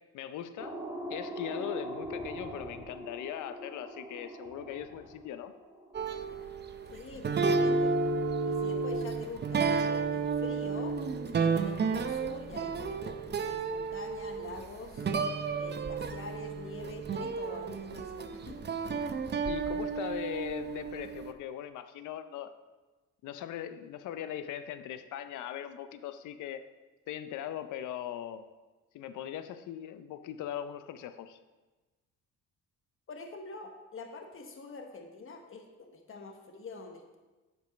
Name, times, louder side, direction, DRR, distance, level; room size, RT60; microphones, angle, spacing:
voice 1, 0.1-0.8 1.1-5.5 19.5-22.5 23.2-26.6 27.1-28.5 28.9-31.4, left 10 dB, 80° left, 11 dB, 0.6 m, -40 dB
sound 1, 0.6-6.4, right 1 dB, 10° right, 1.6 m, -42 dB
A train is coming through my window, 5.9-21.3, right 4 dB, 35° right, 0.6 m, -32 dB
voice 2, 6.9-7.9 8.4-10.9 11.4-15.1 15.6-18.6 33.1-37.2, left 3 dB, 45° left, 4 dB, 1.1 m, -45 dB
7.9 x 5.4 x 5.1 m, 1.2 s
cardioid pair, 90°, 30 cm